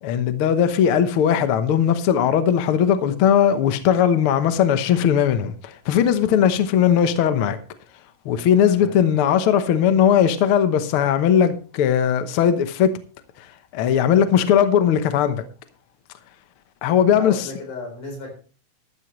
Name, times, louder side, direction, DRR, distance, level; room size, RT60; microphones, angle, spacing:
voice 1, 0.0-7.6 8.2-13.0 13.4-15.4 16.8-17.5, left 8 dB, 65° left, 1.4 m, -19 dB
voice 2, 17.1-18.3, left 2 dB, 80° left, 5.7 m, -35 dB
13.0 x 12.5 x 3.1 m
omnidirectional pair, 3.6 m